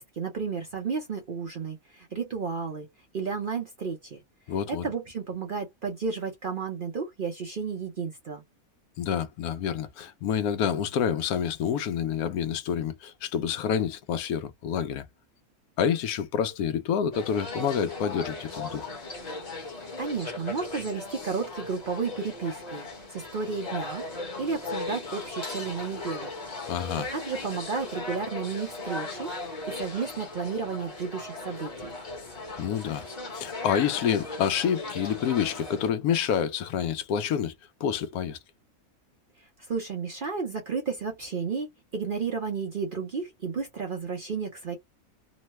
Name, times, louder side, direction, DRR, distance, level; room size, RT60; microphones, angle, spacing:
voice 1, 0.0-2.9 3.1-4.2 4.8-8.4 20.0-24.0 24.4-26.3 27.1-31.9 39.4-41.7 41.9-44.8, right 5 dB, 50° right, 0.6 m, -32 dB
voice 2, 4.5-4.9 9.0-15.1 15.8-18.9 26.7-27.1 32.6-33.1 33.3-37.5 37.8-38.4, left 8 dB, 80° left, 1.1 m, -28 dB
sound 1, 17.1-35.9, left 2 dB, 30° left, 1.0 m, -38 dB
3.0 x 2.1 x 2.9 m
omnidirectional pair, 1.6 m